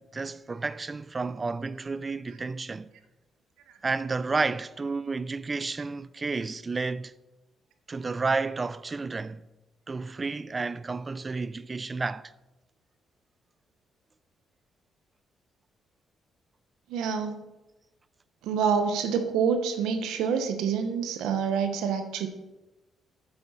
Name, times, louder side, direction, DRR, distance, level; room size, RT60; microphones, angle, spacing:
voice 1, 0.0-2.9 3.8-7.1 7.9-9.5 9.9-12.3, right 4 dB, 30° right, 0.4 m, -31 dB
voice 2, 16.9-17.5 18.4-22.3, right 6 dB, 85° right, 1.1 m, -27 dB
8.8 x 6.9 x 5.7 m
cardioid pair, 90°, 0 cm